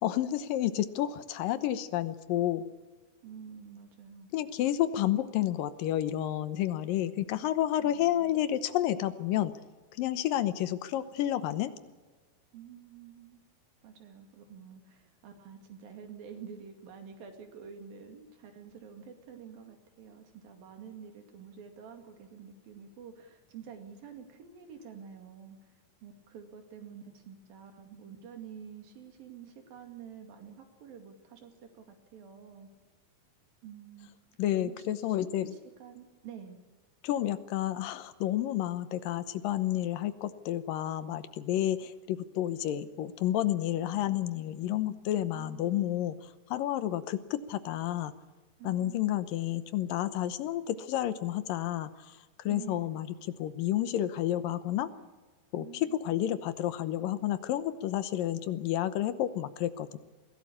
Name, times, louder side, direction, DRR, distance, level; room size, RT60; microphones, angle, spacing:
voice 1, 0.0-2.7 4.3-9.5 9.9-11.7 34.4-35.6 37.0-48.1 48.6-54.9 55.5-60.0, left 12 dB, 75° left, 13 dB, 2.6 m, -30 dB
voice 2, 3.2-4.3 7.8-8.3 12.5-13.4 13.8-25.6 26.0-32.7 33.6-34.1 34.5-36.6 45.3-45.7 48.6-49.0 52.4-53.1 55.6-55.9, right 7 dB, 80° right, 5 dB, 4.2 m, -48 dB
22.0 x 16.5 x 8.6 m, 1.3 s
omnidirectional pair, 4.1 m